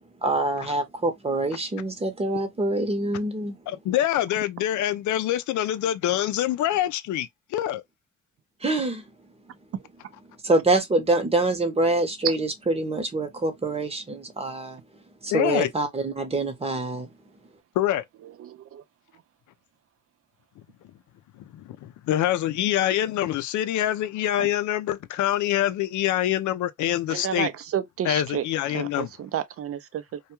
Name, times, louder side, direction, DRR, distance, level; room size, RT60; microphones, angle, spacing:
voice 1, 0.2-3.6 8.6-9.0 10.4-14.8 15.2-17.1, right 2 dB, 20° right, 0.8 m, -25 dB
voice 2, 3.7-7.8 15.3-15.7 17.8-18.0 21.4-27.5 28.0-29.1, left 12 dB, 75° left, 0.5 m, -25 dB
voice 3, 18.4-18.8 24.4-24.5 27.1-28.5 28.7-30.2, right 9 dB, 50° right, 0.5 m, -31 dB
2.3 x 2.2 x 2.9 m
cardioid pair, 90°, 30 cm